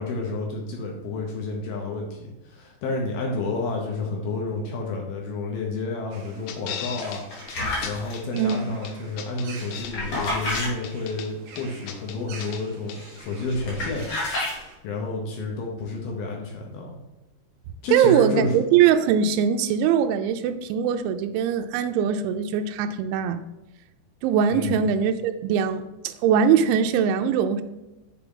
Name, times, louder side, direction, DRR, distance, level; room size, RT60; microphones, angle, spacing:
voice 1, 0.0-7.2 7.8-14.1 14.4-14.6 14.8-17.0 17.8-18.5 24.5-24.8, left 3 dB, 70° left, 0 dB, 2.5 m, -30 dB
sound 1, 6.1-14.8, right 4 dB, 65° right, 2.5 m, -48 dB
sound 2, 6.5-7.2 7.5-7.6 7.8-8.6 8.9-9.9 10.2-11.3 11.6-12.6 12.9-13.0, left 9 dB, 85° left, 3.1 m, -36 dB
sound 3, 7.0-8.2 9.5-10.7 12.9-13.2 13.5-14.6, left 2 dB, 40° left, 3.3 m, -30 dB
voice 2, 8.3-8.8 17.9-23.4 24.2-27.6, right 8 dB, 90° right, 8 dB, 3.0 m, -21 dB
8.4 x 5.9 x 3.8 m, 0.99 s
omnidirectional pair, 5.2 m